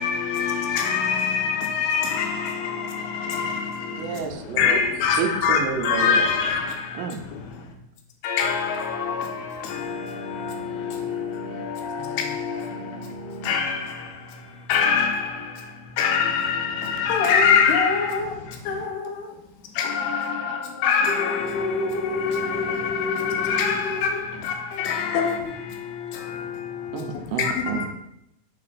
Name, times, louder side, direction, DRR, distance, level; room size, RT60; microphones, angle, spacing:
voice 1, 0.0-2.3 3.3-3.4 4.6-6.6 8.2-8.7 13.5-13.7 14.7-15.1 16.0-16.6 17.0-17.9 20.8-21.3 23.4-23.8 24.8-25.0 27.4-27.5, left 6 dB, 90° left, 2.6 m, -21 dB
voice 2, 3.9-4.8 5.2-6.3 6.9-7.2 26.9-27.9, right 6 dB, 80° right, 2.1 m, -29 dB
voice 3, 17.1-18.3 18.7-19.3 21.1-24.2 25.1-25.3, left 4 dB, 75° left, 1.8 m, -27 dB
5.8 x 4.3 x 4.0 m
omnidirectional pair, 4.4 m